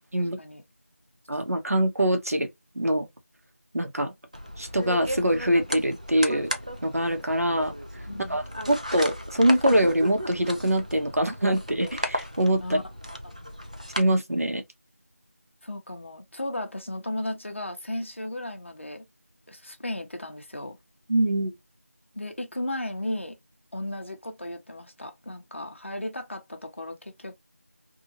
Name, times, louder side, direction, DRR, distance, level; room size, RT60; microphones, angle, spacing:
voice 1, 0.2-0.6 8.1-8.4 12.6-12.8 13.2-13.3 15.6-19.0 19.5-20.8 22.1-23.3 23.7-27.4, left 1 dB, 50° left, 0.9 m, -35 dB
voice 2, 1.3-2.5 2.7-3.1 3.7-4.1 4.6-6.5 6.8-7.7 8.3-12.8 14.0-14.6 21.1-21.5, right 1 dB, 75° right, 0.9 m, -24 dB
sound 1, 4.3-14.0, equal, 30° right, 0.4 m, -34 dB
2.8 x 2.7 x 2.8 m
figure-of-eight pair, 175°, 8 cm